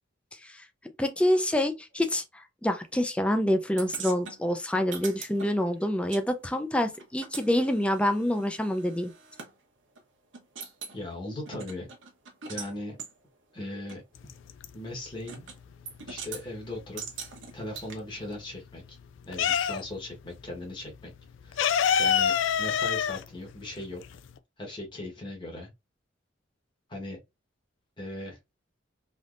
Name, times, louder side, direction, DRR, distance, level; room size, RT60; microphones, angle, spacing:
voice 1, 1.0-9.1, left 1 dB, 5° left, 0.4 m, -27 dB
sound 1, 3.8-6.2 6.5-9.5 10.0-10.1 10.3-11.0 11.5-12.7 13.0-13.1 13.9-14.0 15.3-15.6 15.9-16.4 17.0-17.9, right 6 dB, 70° right, 0.9 m, -42 dB
voice 2, 10.9-11.9 12.5-13.0 13.5-14.0 14.7-15.5 16.1-17.0 17.5-19.0 19.3-21.1 21.4-21.7 22.0-22.3 22.6-24.0 24.6-25.7 26.9-27.2 28.0-28.4, left 1 dB, 25° left, 1.2 m, -38 dB
sound 2, 14.2-15.1 15.4-17.4 17.7-20.1 20.4-20.5 20.8-24.4, left 8 dB, 70° left, 0.4 m, -27 dB
3.4 x 2.7 x 2.5 m
head